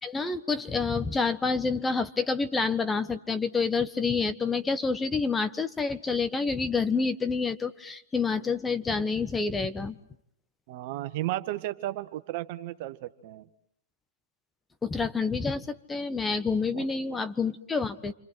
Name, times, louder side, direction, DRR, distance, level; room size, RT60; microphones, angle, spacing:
voice 1, 0.0-10.0 14.8-18.1, left 4 dB, 10° left, 12 dB, 1.3 m, -28 dB
voice 2, 10.7-13.5 16.7-16.9, right 15 dB, 45° right, 11 dB, 1.7 m, -34 dB
29.0 x 26.0 x 7.8 m, 0.70 s
hypercardioid pair, 115°, 0 cm